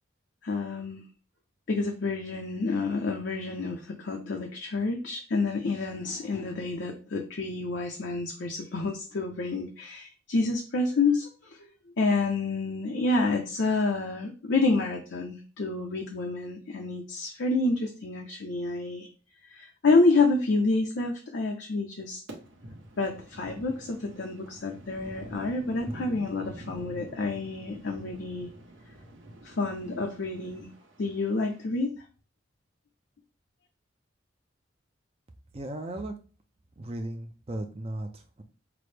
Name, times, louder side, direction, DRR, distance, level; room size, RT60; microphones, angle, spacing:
voice 1, 0.4-1.0 1.7-11.6 12.0-19.1 19.4-22.2 23.0-28.5 29.4-30.7 31.0-32.0, left 3 dB, 75° left, 2 dB, 0.6 m, -28 dB
sound 1, 22.3-31.6, right 1 dB, 90° right, 1.0 m, -46 dB
voice 2, 35.5-36.1 36.8-38.4, right 1 dB, 30° right, 6 dB, 0.4 m, -36 dB
5.9 x 2.0 x 3.3 m, 0.35 s
head